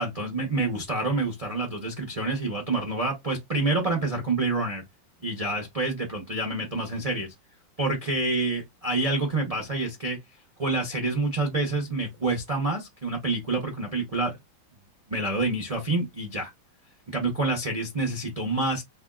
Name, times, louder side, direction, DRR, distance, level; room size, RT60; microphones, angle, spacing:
voice 1, 0.0-4.8 5.2-7.3 7.8-10.2 10.6-14.4 15.1-16.5 17.1-18.8, right 2 dB, 70° right, 0.3 m, -27 dB
3.4 x 2.2 x 3.6 m
omnidirectional pair, 2.1 m